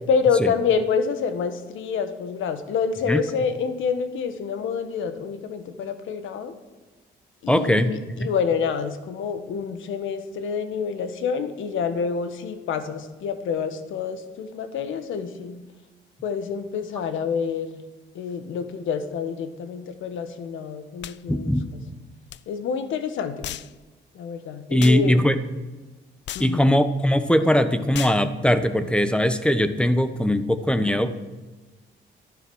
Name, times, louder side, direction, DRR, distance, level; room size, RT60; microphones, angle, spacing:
voice 1, 0.1-6.5 7.4-15.6 16.2-17.8 18.1-21.8 22.5-23.6 24.1-25.2 26.3-26.7, left 6 dB, 80° left, 10 dB, 1.4 m, -27 dB
voice 2, 7.5-7.9 8.2-8.3 21.3-21.6 24.7-25.4 26.4-31.1, equal, 5° left, 11 dB, 1.1 m, -20 dB
sound 1, 21.0-21.2 22.3-22.4 23.4-23.7 24.8-25.0 26.3-26.5 27.9-28.2, left 12 dB, 65° left, 0.5 m, -35 dB
12.5 x 11.0 x 6.3 m, 1.2 s
cardioid pair, 90°, 20 cm